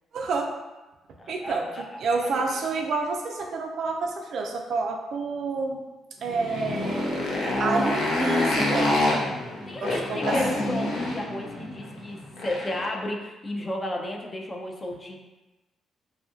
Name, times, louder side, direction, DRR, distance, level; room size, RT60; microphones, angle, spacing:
voice 1, 0.1-0.5 1.3-5.8 6.2-7.2 7.6-9.0 9.8-10.4, right 3 dB, 65° right, 2 dB, 0.4 m, -29 dB
voice 2, 1.2-2.4 9.7-15.2, left 1 dB, 30° left, 1 dB, 0.4 m, -33 dB
Motorcycle, 6.3-12.9, left 1 dB, 80° left, 0.5 m, -27 dB
2.7 x 2.4 x 2.4 m, 1.1 s
cardioid pair, 90°, 0 cm